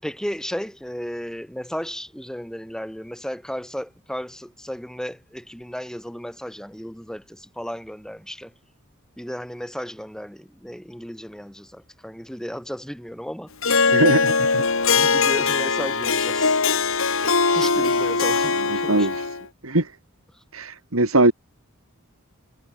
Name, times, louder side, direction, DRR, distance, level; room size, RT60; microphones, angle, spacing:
voice 1, 0.0-8.5 9.2-13.5 14.9-16.6 17.5-19.1, equal, 5° left, 7.5 m, -34 dB
Harp, 13.6-19.4, left 4 dB, 65° left, 2.8 m, -21 dB
voice 2, 13.9-14.6 18.7-19.3 19.6-19.9 20.5-21.3, right 2 dB, 70° right, 3.4 m, -21 dB
head